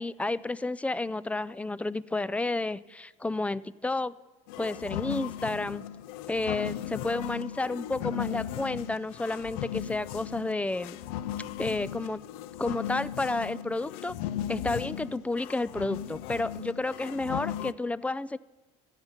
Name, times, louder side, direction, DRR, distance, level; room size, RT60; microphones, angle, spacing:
voice 1, 0.0-4.2 4.6-5.8 6.3-11.0 11.6-12.2 12.6-14.1 14.5-18.4, left 2 dB, 10° left, 19 dB, 0.3 m, -31 dB
sound 1, 4.5-17.7, left 11 dB, 85° left, 0.4 m, -37 dB
13.0 x 8.2 x 5.6 m, 1.2 s
supercardioid pair, 95°, 15 cm